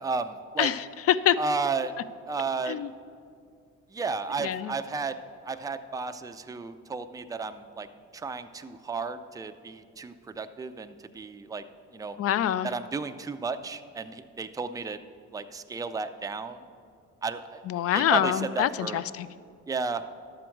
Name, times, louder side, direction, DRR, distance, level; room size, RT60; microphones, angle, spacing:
voice 1, 0.0-0.7 1.4-1.9 2.3-2.8 3.9-5.2 5.4-7.9 8.1-11.6 11.9-12.2 12.6-15.0 15.3-16.6 17.2-19.0 19.7-20.0, right 4 dB, 10° right, 8 dB, 0.4 m, -33 dB
voice 2, 0.6-1.4 2.7-2.9 4.4-4.7 12.2-12.7 17.7-19.3, left 11 dB, 50° left, 16 dB, 0.4 m, -25 dB
11.5 x 7.6 x 4.5 m, 2.2 s
cardioid pair, 90°, 30 cm